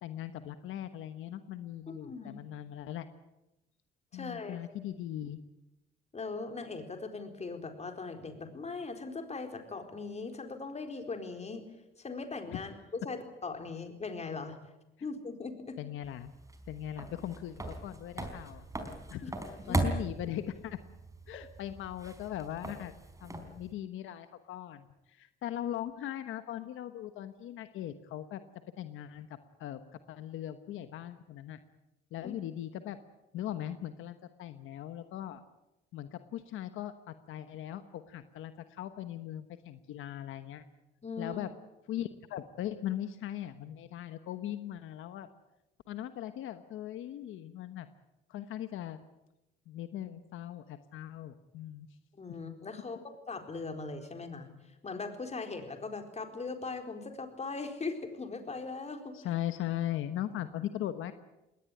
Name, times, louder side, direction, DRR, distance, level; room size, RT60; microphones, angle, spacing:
voice 1, 0.0-3.1 4.1-5.4 12.5-12.6 15.8-16.3 16.7-18.7 19.1-19.3 19.7-20.8 21.3-22.9 23.2-28.4 28.8-29.8 30.1-31.6 32.1-33.0 33.3-35.4 35.9-40.6 41.2-41.5 41.9-45.3 45.9-47.9 48.3-49.0 49.7-51.9 59.1-61.1, left 12 dB, 85° left, 10 dB, 1.2 m, -39 dB
voice 2, 1.9-2.4 4.1-4.6 6.1-11.6 12.0-14.6 15.0-15.8 19.2-19.3 19.6-19.9 32.2-32.3 41.0-41.4 52.1-53.0 53.3-54.5 54.8-59.2, left 4 dB, 35° left, 6 dB, 4.2 m, -40 dB
sound 1, 16.0-23.7, right 2 dB, 15° right, 4.1 m, -39 dB
20.5 x 18.5 x 9.9 m, 0.95 s
cardioid pair, 90°, 20 cm